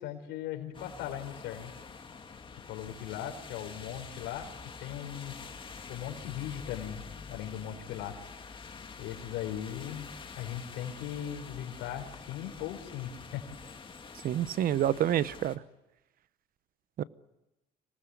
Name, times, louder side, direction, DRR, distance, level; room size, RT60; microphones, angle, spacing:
voice 1, 0.0-1.7 2.7-4.5 4.8-5.3 5.9-7.0 7.3-8.1 9.0-13.4, left 10 dB, 90° left, 3 dB, 4.4 m, -38 dB
sound 1, 0.7-15.6, left 5 dB, 30° left, 2.2 m, -47 dB
voice 2, 14.2-15.6 17.0-17.1, right 11 dB, 60° right, 17 dB, 0.9 m, -28 dB
25.0 x 19.0 x 9.8 m, 0.97 s
cardioid pair, 110°, 17 cm